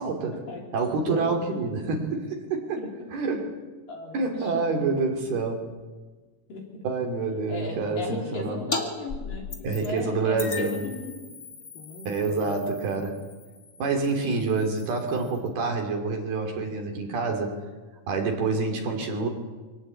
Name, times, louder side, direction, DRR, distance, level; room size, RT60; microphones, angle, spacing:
voice 1, 0.0-0.4 0.7-3.6 4.1-5.7 6.8-8.6 9.6-10.8 12.1-13.2 13.8-17.6 18.1-19.3, right 3 dB, 60° right, 2 dB, 4.5 m, -27 dB
voice 2, 1.0-1.6 2.8-3.1 3.9-4.8 6.5-6.6 7.5-11.4 11.7-12.6, left 2 dB, 50° left, -1 dB, 5.2 m, -36 dB
sound 1, 8.7-8.8 9.1-10.0 10.4-15.5, left 4 dB, 30° left, 1.7 m, -38 dB
24.5 x 18.5 x 8.6 m, 1.3 s
omnidirectional pair, 5.4 m